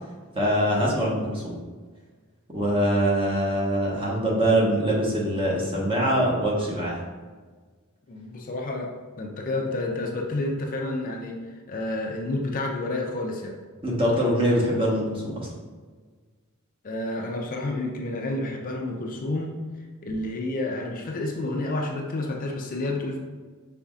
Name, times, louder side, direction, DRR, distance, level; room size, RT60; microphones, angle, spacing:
voice 1, 0.3-1.6 2.5-7.0 13.8-15.4, equal, 25° right, -4 dB, 1.1 m, -23 dB
voice 2, 8.1-8.9 9.2-11.4 11.7-13.6 16.8-19.5 20.0-23.2, left 2 dB, 40° left, 0 dB, 0.5 m, -30 dB
5.5 x 4.1 x 2.4 m, 1.5 s
head